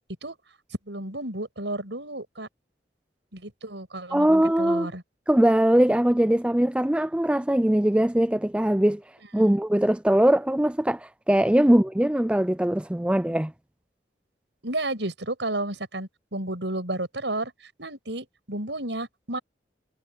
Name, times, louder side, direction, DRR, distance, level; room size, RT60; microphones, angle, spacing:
voice 1, 0.9-2.5 3.3-4.3 4.6-5.0 9.4-9.5 11.7-11.8 14.6-17.5 17.8-19.4, right 2 dB, 85° right, 7.3 m, -32 dB
voice 2, 4.1-4.9 5.3-9.0 9.3-13.5, right 1 dB, 5° right, 0.4 m, -21 dB
head